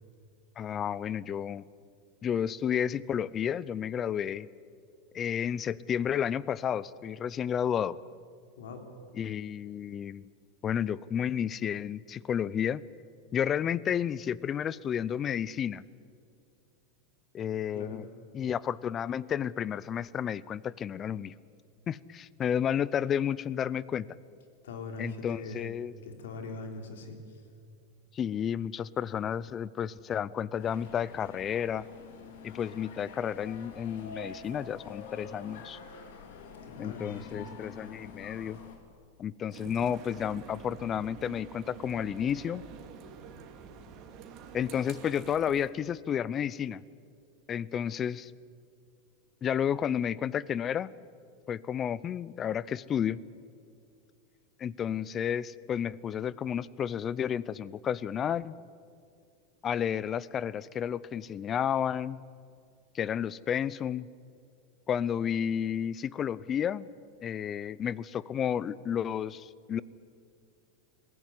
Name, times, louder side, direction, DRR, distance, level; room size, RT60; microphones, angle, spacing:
voice 1, 0.6-1.6 2.2-4.5 5.1-8.0 9.2-10.3 10.6-12.8 13.3-15.8 17.3-18.1 18.3-21.3 21.9-24.1 25.0-25.9 28.1-31.8 32.4-35.8 36.8-38.6 39.2-42.6 44.5-46.8 47.5-48.3 49.4-50.9 51.5-53.2 54.6-58.5 59.6-62.2 62.9-64.1 64.9-66.9 67.2-69.8, left 8 dB, 25° left, 21 dB, 0.5 m, -31 dB
voice 2, 8.6-8.9 17.7-18.0 24.6-25.7 26.0-27.4 36.6-37.5, left 3 dB, 90° left, 5 dB, 3.4 m, -42 dB
sound 1, 30.6-38.8, left 5 dB, 75° left, 3.2 m, -47 dB
sound 2, 39.5-45.7, right 6 dB, 45° right, 2.4 m, -47 dB
21.5 x 15.5 x 9.8 m, 2.4 s
supercardioid pair, 135°, 0 cm